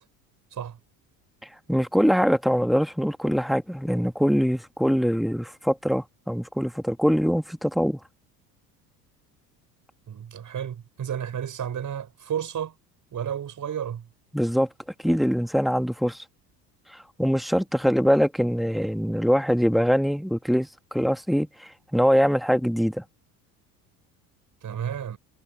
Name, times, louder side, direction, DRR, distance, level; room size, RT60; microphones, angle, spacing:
voice 1, 1.7-8.0 14.3-14.7 15.0-16.2 16.9-21.5 21.9-23.0, equal, ahead, 2.1 m, -23 dB
voice 2, 10.1-12.7 13.1-14.1 24.6-25.2, right 9 dB, 40° right, 5.8 m, -32 dB
hypercardioid pair, 65°, 48 cm